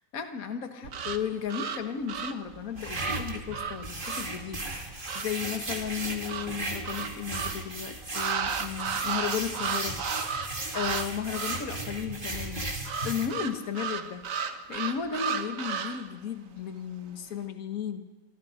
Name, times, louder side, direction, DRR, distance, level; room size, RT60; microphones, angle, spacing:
voice 1, 0.1-10.0 10.7-18.0, left 8 dB, 55° left, 6 dB, 1.9 m, -35 dB
sound 1, 0.8-5.4 6.3-7.7 8.1-11.1 11.3-11.8 12.8-16.1, right 6 dB, 55° right, 1.3 m, -34 dB
sound 2, 2.8-13.3, right 2 dB, 30° right, 2.7 m, -36 dB
27.0 x 24.0 x 5.2 m, 1.2 s
omnidirectional pair, 1.8 m